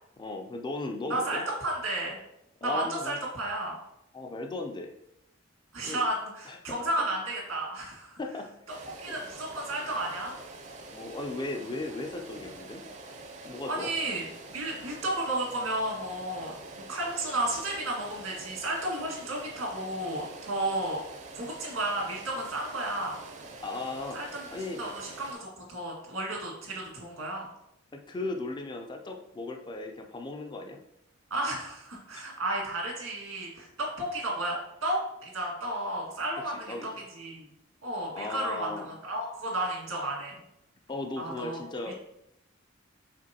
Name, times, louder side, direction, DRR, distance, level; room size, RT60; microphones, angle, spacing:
voice 1, 0.2-1.4 2.6-3.2 4.1-4.9 5.8-6.0 6.5-6.9 8.2-8.5 9.1-9.2 10.9-12.9 13.4-13.9 23.6-24.2 24.5-24.8 27.9-30.8 32.2-32.3 36.7-36.9 38.1-38.9 40.9-42.0, left 2 dB, 20° left, 4 dB, 0.3 m, -36 dB
voice 2, 1.1-2.2 2.6-3.8 5.7-8.2 9.0-10.3 13.6-21.0 21.3-23.2 24.1-24.4 24.8-27.5 31.3-37.5 37.8-40.4 41.2-41.6, right 1 dB, 85° right, -3 dB, 1.7 m, -33 dB
sound 1, 8.7-25.3, right 2 dB, 35° right, 0.5 m, -46 dB
5.0 x 3.8 x 2.8 m, 0.82 s
head